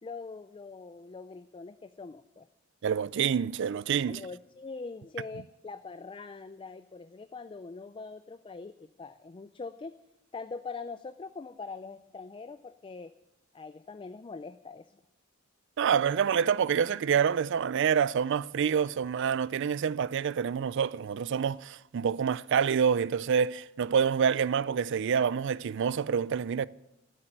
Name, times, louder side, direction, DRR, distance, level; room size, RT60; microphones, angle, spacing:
voice 1, 0.0-2.5 4.1-9.9 10.3-13.1 13.5-14.9, left 4 dB, 25° left, 0.4 m, -43 dB
voice 2, 2.8-4.2 15.8-26.7, right 7 dB, 60° right, 0.4 m, -27 dB
12.5 x 8.7 x 9.1 m
head